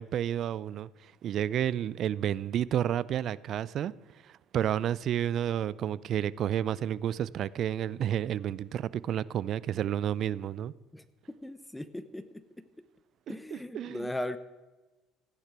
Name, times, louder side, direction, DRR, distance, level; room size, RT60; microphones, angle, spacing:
voice 1, 0.0-3.9 4.2-10.7 13.5-14.1, right 10 dB, 55° right, 0.5 m, -31 dB
voice 2, 10.9-12.7 13.3-14.4, left 1 dB, 5° left, 0.9 m, -38 dB
15.0 x 9.9 x 6.1 m
supercardioid pair, 100°, 0 cm